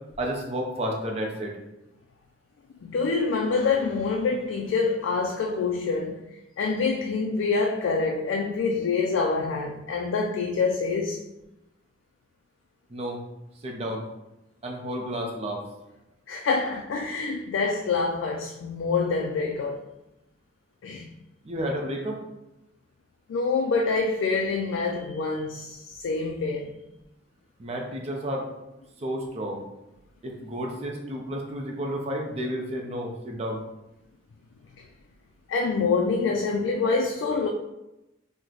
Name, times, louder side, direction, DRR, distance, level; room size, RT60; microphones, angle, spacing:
voice 1, 0.2-1.5 12.9-13.2 13.6-14.0 14.6-15.6 21.4-22.2 27.6-28.5 29.0-29.6 30.2-33.6, equal, 35° right, 0.5 m, -31 dB
voice 2, 2.8-6.2 6.6-11.2 16.3-19.8 20.8-21.1 23.3-26.7 35.5-37.5, left 4 dB, 85° left, 0.3 m, -26 dB
3.0 x 2.1 x 3.8 m
head